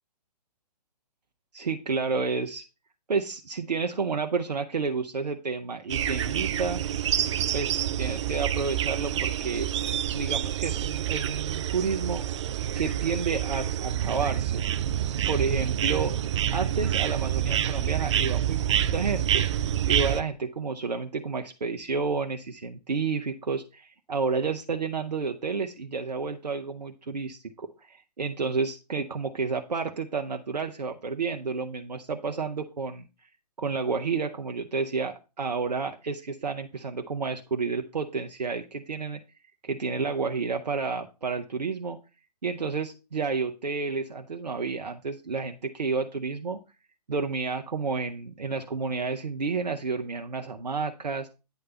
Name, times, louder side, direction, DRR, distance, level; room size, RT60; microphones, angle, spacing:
voice 1, 1.5-2.6 3.1-6.8 7.5-9.7 10.1-12.2 12.8-14.6 15.3-16.1 16.5-19.5 19.9-33.1 33.6-39.2 39.6-42.0 42.4-46.6 47.1-51.3, right 4 dB, 80° right, 5 dB, 0.8 m, -30 dB
sound 1, 5.9-20.2, right 10 dB, 45° right, 0.5 m, -27 dB
9.3 x 3.3 x 6.8 m, 0.30 s
figure-of-eight pair, 125°, 21 cm